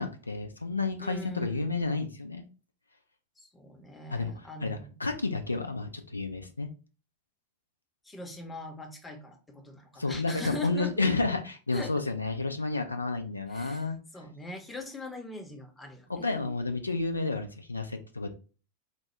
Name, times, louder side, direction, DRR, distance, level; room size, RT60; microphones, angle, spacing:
voice 1, 0.0-2.5 4.1-6.7 10.0-14.0 16.1-18.3, left 3 dB, 80° left, 5 dB, 0.4 m, -31 dB
voice 2, 1.0-1.9 3.4-4.9 8.0-11.1 11.7-11.9 13.5-16.5, left 2 dB, 10° left, 3 dB, 0.7 m, -42 dB
4.2 x 2.2 x 3.0 m, 0.35 s
figure-of-eight pair, 90°, 0 cm